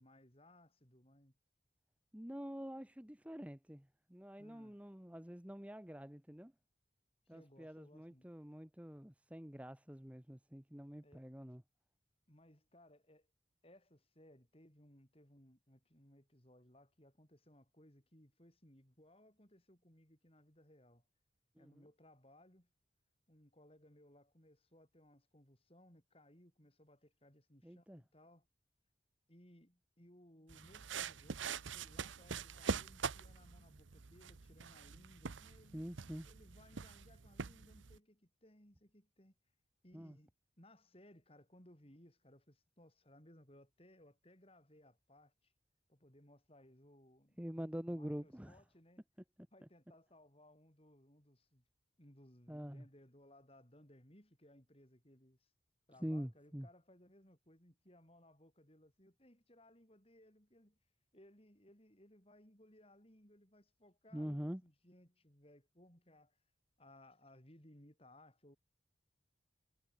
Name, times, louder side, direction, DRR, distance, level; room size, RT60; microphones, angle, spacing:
voice 1, 0.0-1.4 4.4-4.8 7.3-8.3 11.0-11.3 12.3-13.3 13.6-21.0 21.6-22.7 23.3-28.5 29.3-35.9 36.2-39.4 39.8-45.5 45.9-47.4 47.9-49.0 49.5-51.6 52.0-55.5 55.9-60.8 61.1-66.4 66.8-68.6, left 1 dB, 30° left, 6.3 m, -64 dB
voice 2, 2.1-6.5 7.3-11.6 21.6-21.8 27.6-28.0 35.7-36.3 39.9-40.2 47.4-48.6 52.5-52.9 56.0-56.7 64.1-64.6, equal, 5° right, 0.9 m, -46 dB
sound 1, 30.5-38.0, right 5 dB, 90° right, 0.9 m, -44 dB
head